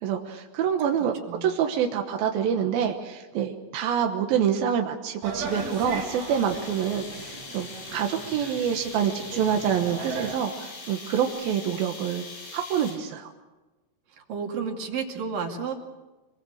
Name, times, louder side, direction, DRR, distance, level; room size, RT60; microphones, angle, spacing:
voice 1, 0.0-1.1 1.4-12.2 12.5-13.3, right 8 dB, 70° right, 3 dB, 2.3 m, -26 dB
sound 1, 5.2-10.4, right 3 dB, 85° right, 6.1 m, -38 dB
sound 2, 5.5-13.2, left 4 dB, 80° left, 8.7 m, -42 dB
voice 2, 14.2-15.7, right 6 dB, 50° right, 2 dB, 3.6 m, -31 dB
25.5 x 23.5 x 6.6 m, 1.2 s
omnidirectional pair, 5.8 m